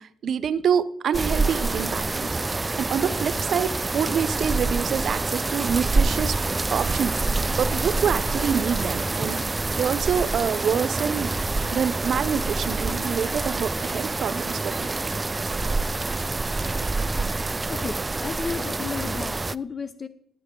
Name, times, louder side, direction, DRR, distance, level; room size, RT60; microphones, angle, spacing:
voice 1, 0.0-6.4 6.7-11.3 11.7-14.9, right 7 dB, 60° right, 16 dB, 0.7 m, -27 dB
sound 1, 1.1-19.6, right 3 dB, 20° right, 0.3 m, -26 dB
voice 2, 17.5-20.1, left 5 dB, 35° left, 12 dB, 0.6 m, -33 dB
14.5 x 9.1 x 3.8 m, 0.67 s
cardioid pair, 90°, 0 cm